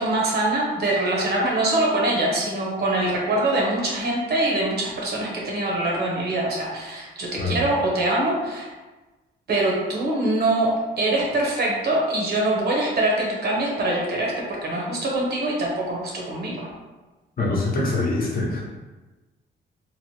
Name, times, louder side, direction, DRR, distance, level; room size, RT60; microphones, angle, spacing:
voice 1, 0.0-8.7 9.5-16.7, right 2 dB, 55° right, -2 dB, 0.9 m, -24 dB
voice 2, 17.4-18.6, left 2 dB, 50° left, -3 dB, 0.8 m, -24 dB
2.9 x 2.1 x 3.1 m, 1.2 s
cardioid pair, 90°, 20 cm